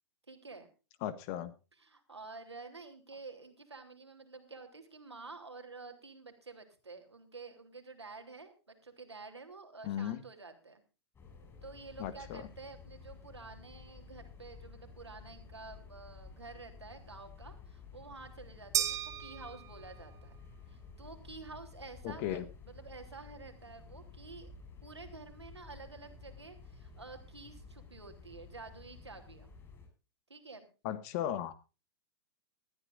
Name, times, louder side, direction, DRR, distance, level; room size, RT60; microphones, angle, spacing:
voice 1, 0.3-0.7 1.8-10.8 11.6-20.4 20.7-24.5 24.8-29.6 30.3-30.7, right 3 dB, 80° right, 6 dB, 3.4 m, -50 dB
voice 2, 1.0-1.5 9.8-10.2 12.0-12.5 22.0-22.4 30.8-31.5, left 11 dB, 40° left, 14 dB, 1.6 m, -36 dB
sound 1, 11.1-29.9, left 4 dB, 20° left, 6.9 m, -53 dB
sound 2, 18.7-20.2, right 10 dB, 20° right, 1.2 m, -35 dB
20.0 x 13.5 x 2.5 m, 0.32 s
figure-of-eight pair, 105°, 14 cm